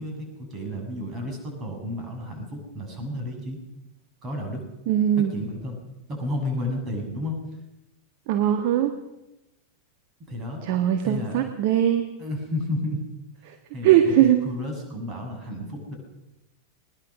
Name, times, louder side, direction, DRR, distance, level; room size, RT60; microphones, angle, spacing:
voice 1, 0.0-3.6 4.2-4.6 5.2-5.8 6.1-7.4 10.3-10.7 11.0-11.4 12.2-13.0 13.7-16.0, left 1 dB, 30° right, 3 dB, 7.1 m, -32 dB
voice 2, 4.9-5.3 8.3-8.9 10.6-12.1 13.8-14.4, right 11 dB, 50° right, 7 dB, 1.6 m, -20 dB
21.0 x 19.5 x 6.3 m, 0.94 s
figure-of-eight pair, 90°, 0 cm